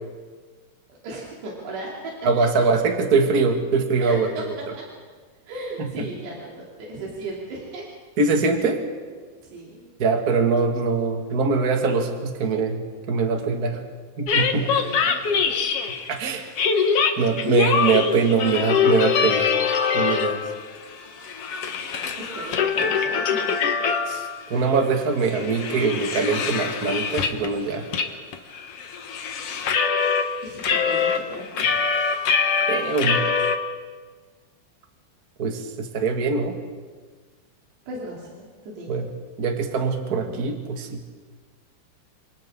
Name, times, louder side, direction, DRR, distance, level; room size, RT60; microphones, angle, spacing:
voice 1, 1.0-2.1 4.0-4.4 4.8-4.9 5.4-7.8 9.4-9.9 14.4-15.5 22.2-23.7 30.4-31.8 37.9-39.0, right 2 dB, 85° right, -4 dB, 5.2 m, -36 dB
voice 2, 2.2-4.3 5.8-6.1 8.2-8.8 10.0-12.8 13.1-13.8 14.2-14.7 16.1-16.5 17.2-19.6 19.9-20.4 24.1-27.9 32.7-33.2 35.4-36.5 38.9-39.1 39.4-41.0, right 4 dB, 35° right, 3 dB, 1.5 m, -22 dB
sound 1, 14.3-16.1 16.6-20.6 20.9-24.4 24.7-24.8 25.2-27.5 27.9-28.1 28.3-30.3 30.6-33.6, left 6 dB, 70° left, 1.4 m, -23 dB
28.0 x 27.0 x 3.8 m, 1.5 s
omnidirectional pair, 4.7 m